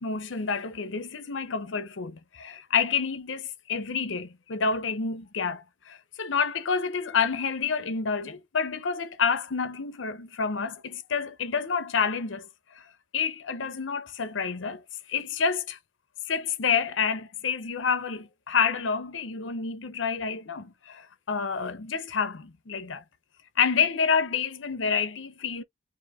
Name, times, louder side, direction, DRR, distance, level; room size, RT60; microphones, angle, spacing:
voice 1, 0.0-12.5 12.7-12.8 13.1-14.8 15.1-15.8 16.3-23.0 23.6-25.6, left 6 dB, 75° left, 0.7 m, -28 dB
3.9 x 2.7 x 3.5 m
head